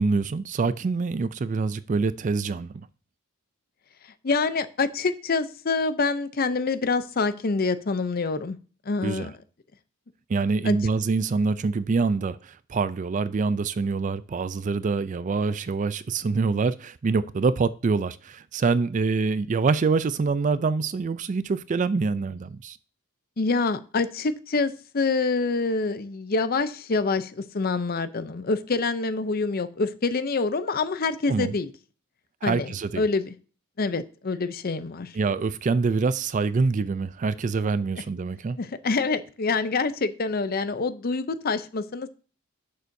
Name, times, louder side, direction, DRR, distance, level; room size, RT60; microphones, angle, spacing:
voice 1, 0.0-2.9 9.0-9.3 10.3-22.8 31.3-31.5 32.4-33.0 35.2-38.6, right 4 dB, 35° right, 0.3 m, -25 dB
voice 2, 4.2-8.6 8.9-9.4 10.6-10.8 23.4-31.7 32.4-33.3 33.8-35.1 38.6-42.1, left 4 dB, 40° left, 0.6 m, -26 dB
11.0 x 6.7 x 2.7 m
head